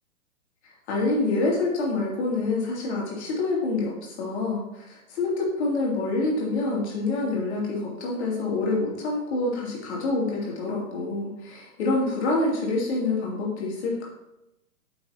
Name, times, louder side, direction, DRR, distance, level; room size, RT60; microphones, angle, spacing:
voice 1, 0.9-14.0, left 2 dB, 45° left, -3 dB, 3.1 m, -27 dB
8.5 x 6.7 x 3.0 m, 0.90 s
figure-of-eight pair, 125°, 44 cm